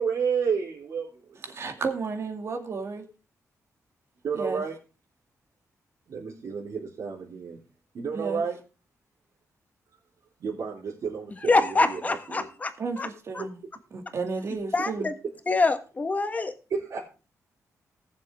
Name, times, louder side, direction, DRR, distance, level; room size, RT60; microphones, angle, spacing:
voice 1, 0.0-1.4 4.2-4.7 6.1-7.6 7.9-8.6 10.4-12.5 16.7-17.0, right 6 dB, 70° right, 3.7 m, -31 dB
voice 2, 1.5-3.1 4.3-4.6 8.1-8.5 12.8-13.6 13.9-15.1, right 4 dB, 55° right, 2.3 m, -32 dB
voice 3, 11.5-13.1 13.3-13.4 14.7-15.1 15.5-16.5, left 3 dB, 25° left, 1.4 m, -25 dB
19.0 x 7.4 x 3.6 m
wide cardioid pair, 130°, 6 cm